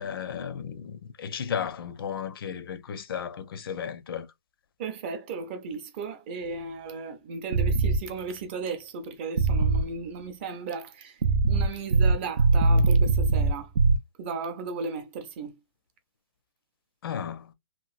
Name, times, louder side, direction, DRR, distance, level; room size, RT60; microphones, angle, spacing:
voice 1, 0.0-4.3 17.0-17.5, left 8 dB, 60° left, 0.5 m, -34 dB
voice 2, 4.8-11.2 11.5-13.7 14.2-15.5, right 4 dB, 25° right, 0.5 m, -35 dB
sound 1, 7.5-8.0 9.4-9.9 11.2-14.0, right 3 dB, 85° right, 0.5 m, -21 dB
2.9 x 2.4 x 2.4 m
hypercardioid pair, 160°, 14 cm